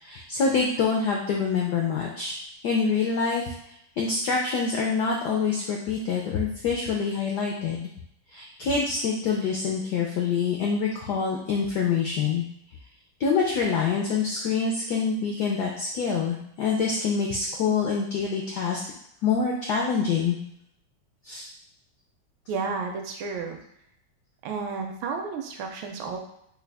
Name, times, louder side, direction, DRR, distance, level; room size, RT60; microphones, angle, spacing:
voice 1, 0.0-2.4 2.6-3.4 4.0-7.9 8.3-12.4 13.2-18.8 19.2-20.4 21.2-21.5, left 5 dB, 85° left, -1 dB, 0.8 m, -26 dB
voice 2, 22.5-23.6 24.4-26.2, right 4 dB, 75° right, 3 dB, 1.3 m, -32 dB
3.7 x 2.3 x 3.3 m, 0.73 s
omnidirectional pair, 2.3 m